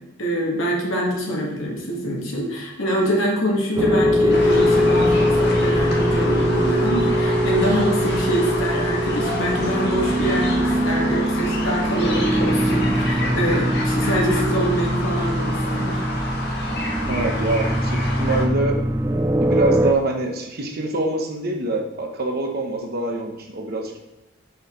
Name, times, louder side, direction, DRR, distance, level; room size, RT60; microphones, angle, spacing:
voice 1, 0.2-16.0, equal, 75° left, -3 dB, 2.0 m, -25 dB
sound 1, 3.8-19.9, equal, 15° right, 0.4 m, -21 dB
sound 2, 4.3-18.4, left 2 dB, 55° left, 1.5 m, -29 dB
voice 2, 17.1-18.8 19.4-24.0, right 2 dB, 50° right, 2 dB, 1.1 m, -25 dB
6.5 x 5.5 x 3.9 m, 0.98 s
head